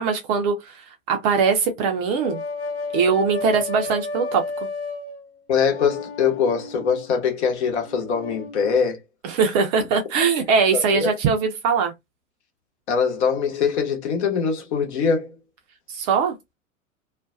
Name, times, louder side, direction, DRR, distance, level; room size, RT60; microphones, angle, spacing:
voice 1, 0.0-2.4 2.9-4.4 9.2-11.9 15.9-16.3, right 5 dB, 30° right, 0.5 m, -21 dB
sound 1, 2.2-5.3 5.5-7.1 7.8-8.8, left 3 dB, 30° left, 1.1 m, -32 dB
voice 2, 5.5-9.0 10.7-11.1 12.9-15.3, left 6 dB, 55° left, 1.0 m, -22 dB
2.4 x 2.2 x 2.4 m
figure-of-eight pair, 95°, 42 cm